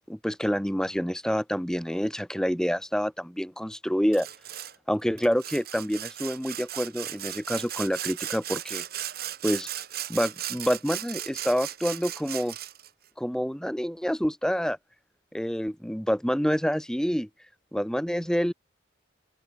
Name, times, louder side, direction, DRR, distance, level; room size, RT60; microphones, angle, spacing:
voice 1, 0.1-4.3 4.9-8.8 9.4-9.7 10.1-12.5 13.2-14.8 15.3-17.3 17.7-18.5, equal, 5° left, 1.6 m, -27 dB
Sawing, 4.1-4.7 5.2-12.9, right 12 dB, 50° right, 3.4 m, -36 dB
open air
head